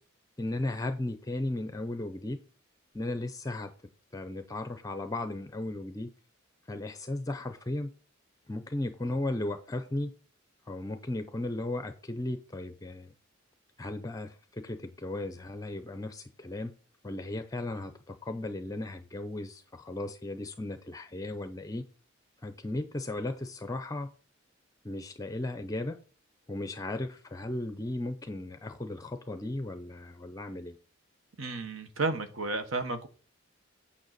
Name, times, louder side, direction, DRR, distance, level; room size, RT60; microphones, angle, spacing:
voice 1, 0.4-2.4 2.9-3.7 4.1-6.1 6.7-7.9 8.5-10.1 10.7-13.1 13.8-16.7 17.0-21.8 22.4-24.1 24.8-26.0 26.5-30.8, left 2 dB, 15° left, 9 dB, 0.5 m, -36 dB
voice 2, 31.4-33.1, right 3 dB, 85° right, 8 dB, 1.3 m, -32 dB
9.2 x 5.8 x 4.0 m, 0.40 s
head